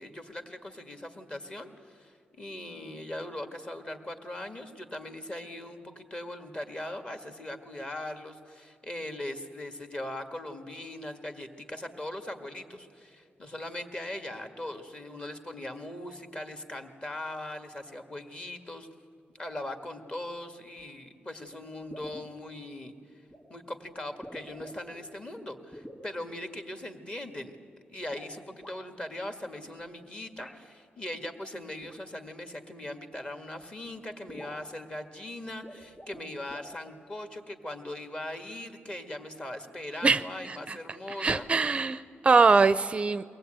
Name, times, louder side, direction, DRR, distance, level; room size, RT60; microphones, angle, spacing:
voice 1, 0.0-18.9 19.3-22.9 23.5-27.5 27.9-41.5, left 1 dB, 30° left, 7 dB, 1.7 m, -40 dB
sound 1, 20.8-20.9 21.5-21.6 21.9-22.3 23.3-23.4 24.1-25.0 25.7-26.1 28.0-28.8 30.4-30.6 31.8-32.0 33.2-33.3 33.6-33.7 33.9-34.0 34.3-34.7 35.5-36.2 36.5-36.7, equal, 10° left, 2.2 m, -47 dB
voice 2, 41.2-43.2, right 4 dB, 30° right, 13 dB, 0.5 m, -23 dB
23.0 x 19.0 x 8.9 m, 2.4 s
wide cardioid pair, 135°, 4 cm